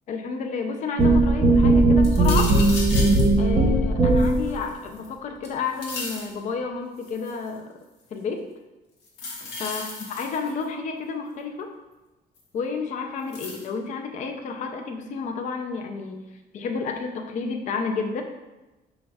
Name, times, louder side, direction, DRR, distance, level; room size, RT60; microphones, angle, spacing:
voice 1, 0.1-2.5 3.4-7.6 8.1-8.5 9.6-11.7 12.5-16.2 16.5-18.2, left 5 dB, 45° left, 4 dB, 0.4 m, -31 dB
sound 1, 1.0-4.5, right 2 dB, 35° right, 1.1 m, -18 dB
sound 2, 2.0-3.3 4.2-5.1 5.4-6.3 7.0-7.5 9.1-10.6 12.4-12.5 13.3-13.7, left 3 dB, 85° left, 0.9 m, -35 dB
5.0 x 2.4 x 3.3 m, 1.1 s
cardioid pair, 150°, 17 cm